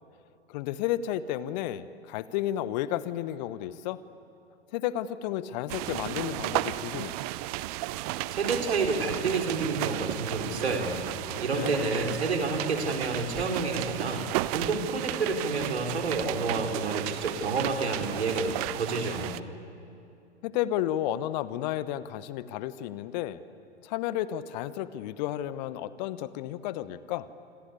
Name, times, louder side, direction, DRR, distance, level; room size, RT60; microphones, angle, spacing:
voice 1, 0.5-4.0 4.7-7.1 11.3-11.8 20.4-23.4 23.8-27.3, left 12 dB, 40° left, 15 dB, 1.1 m, -32 dB
sound 1, 5.7-19.4, right 17 dB, 35° right, 0.7 m, -34 dB
voice 2, 8.3-11.0 11.4-14.2 14.5-19.3, right 3 dB, 65° right, 2 dB, 4.6 m, -29 dB
27.5 x 26.0 x 8.4 m, 2.7 s
figure-of-eight pair, 105°, 35 cm